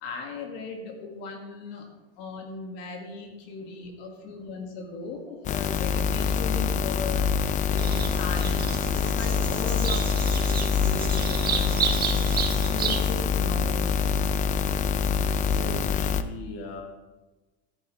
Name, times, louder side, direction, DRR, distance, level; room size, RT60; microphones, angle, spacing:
voice 1, 0.0-1.9 2.2-7.3 7.7-11.8 12.5-14.0, left 4 dB, 75° left, 2 dB, 1.9 m, -38 dB
sound 1, 5.4-16.2, left 6 dB, 25° left, 0.4 m, -25 dB
Bird vocalization bird call bird song, 7.8-13.0, right 6 dB, 30° right, 1.2 m, -32 dB
sound 2, 8.1-13.2, right 2 dB, 5° left, 3.9 m, -43 dB
voice 2, 15.5-16.8, left 3 dB, 50° left, 1 dB, 1.8 m, -38 dB
13.5 x 8.9 x 3.2 m, 1.2 s
supercardioid pair, 130°, 31 cm